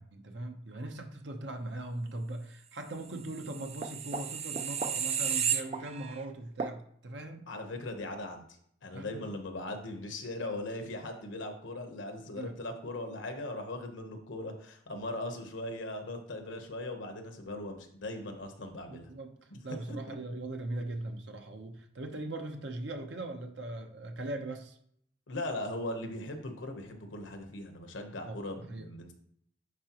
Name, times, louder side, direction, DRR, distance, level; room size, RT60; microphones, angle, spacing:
voice 1, 0.0-7.4 8.9-9.2 12.3-12.6 18.9-19.4 19.6-24.8 28.1-28.9, right 2 dB, 70° right, 5 dB, 0.9 m, -40 dB
sound 1, 3.3-6.2 6.6-6.8, right 7 dB, 35° right, 0.4 m, -33 dB
voice 2, 7.5-8.4 8.8-19.1 19.5-19.6 19.9-20.2 25.3-29.1, left 1 dB, 85° left, 5 dB, 1.1 m, -39 dB
9.7 x 4.0 x 3.0 m, 0.67 s
head